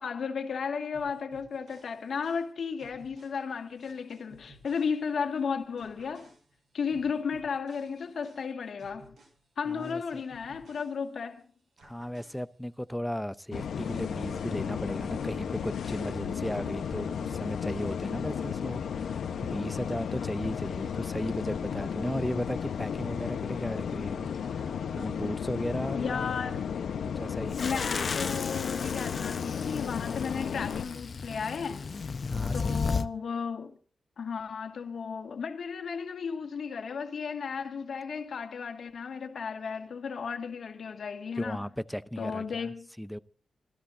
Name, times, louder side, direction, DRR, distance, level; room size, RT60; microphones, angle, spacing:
voice 1, 0.0-6.3 6.7-9.2 9.6-11.4 25.9-26.7 27.6-31.9 32.5-33.7 34.2-41.7 42.2-42.9, left 6 dB, 65° left, 2.1 m, -34 dB
sound 1, 0.9-5.4 5.8-11.4 11.8-12.9, right 2 dB, 70° right, 6.5 m, -59 dB
voice 2, 9.7-10.2 11.8-26.3 27.0-27.6 32.3-33.1 41.4-42.7 43.0-43.2, equal, 5° left, 0.6 m, -36 dB
sound 2, 13.5-30.8, left 7 dB, 85° left, 1.1 m, -34 dB
sound 3, 27.5-33.1, left 5 dB, 45° left, 0.7 m, -34 dB
26.0 x 14.0 x 2.8 m
wide cardioid pair, 125°, 0 cm